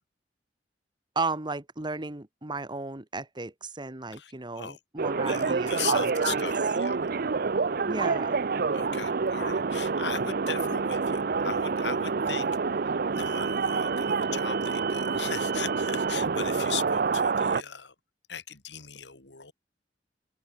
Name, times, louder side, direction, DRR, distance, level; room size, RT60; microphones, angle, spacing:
voice 1, 1.1-6.4 7.8-8.4, right 3 dB, 25° right, 1.5 m, -34 dB
voice 2, 4.1-4.8 5.2-7.1 8.7-17.9 18.3-19.5, left 7 dB, 80° left, 3.8 m, -38 dB
sound 1, 5.0-17.6, right 4 dB, 55° right, 0.6 m, -27 dB
open air
head